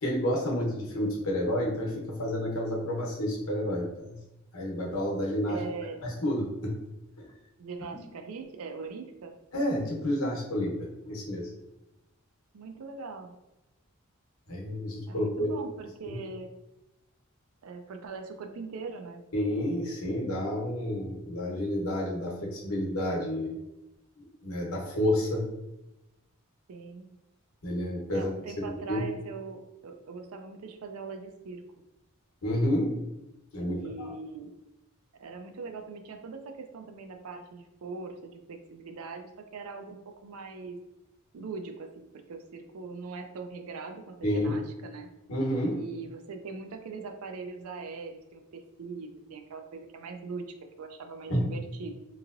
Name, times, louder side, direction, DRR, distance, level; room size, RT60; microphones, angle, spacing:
voice 1, 0.0-4.2 4.5-5.6 6.0-6.8 7.2-7.3 9.5-11.5 14.5-15.5 16.1-16.2 19.3-23.6 24.2-25.5 27.6-28.3 28.7-29.0 32.4-33.0 33.5-34.1 44.2-44.6 45.3-45.8 51.3-51.5, equal, 75° left, -2 dB, 0.9 m, -30 dB
voice 2, 5.5-6.1 7.6-9.4 12.5-13.3 15.1-16.5 17.6-19.2 26.7-27.1 28.1-31.6 33.7-34.5 35.1-40.8 41.3-45.1 45.7-50.5 50.8-51.9, right 4 dB, 85° right, 5 dB, 0.4 m, -41 dB
3.0 x 2.8 x 2.4 m, 0.96 s
head